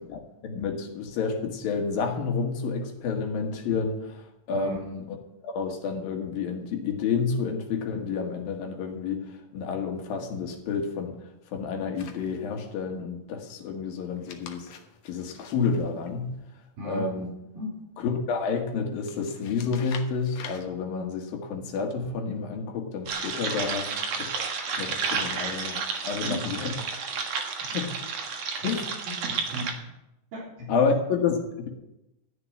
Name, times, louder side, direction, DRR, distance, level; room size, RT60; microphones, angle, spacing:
voice 1, 0.1-5.2 5.4-11.2 11.5-14.7 15.1-16.4 16.9-17.3 18.0-24.5 24.8-26.7 27.7-27.9 28.6-28.8 30.7-31.7, left 5 dB, 80° left, 3 dB, 3.5 m, -30 dB
sound 1, 11.9-12.7 14.1-16.6 19.0-20.6, left 7 dB, 60° left, 2.0 m, -46 dB
voice 2, 16.8-17.1 17.5-17.7 26.2-26.8 27.7-27.8 29.0-29.7 30.3-30.8, right 1 dB, 75° right, -7 dB, 5.4 m, -37 dB
sound 2, 23.1-29.7, right 5 dB, 55° right, 2.3 m, -31 dB
14.0 x 6.8 x 10.0 m, 0.90 s
omnidirectional pair, 4.0 m